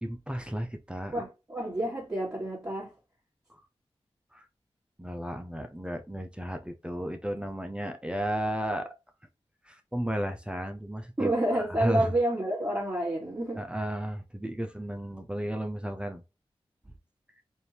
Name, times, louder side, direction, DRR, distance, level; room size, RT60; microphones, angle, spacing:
voice 1, 0.0-1.1 3.5-3.6 4.3-4.4 5.0-8.9 9.7-12.1 13.6-16.2, equal, 10° right, 0.6 m, -34 dB
voice 2, 1.1-2.9 11.2-13.6, right 1 dB, 30° right, 2.5 m, -29 dB
4.4 x 2.7 x 3.4 m
cardioid pair, 40°, 11 cm